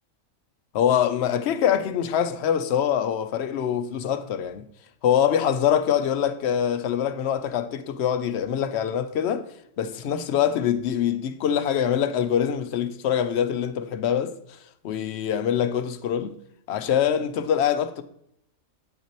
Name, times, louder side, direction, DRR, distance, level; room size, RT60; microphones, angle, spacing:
voice 1, 0.7-4.6 5.0-14.4 14.8-16.3 16.7-18.0, left 9 dB, 65° left, 0.8 m, -24 dB
9.0 x 5.7 x 2.9 m
omnidirectional pair, 1.4 m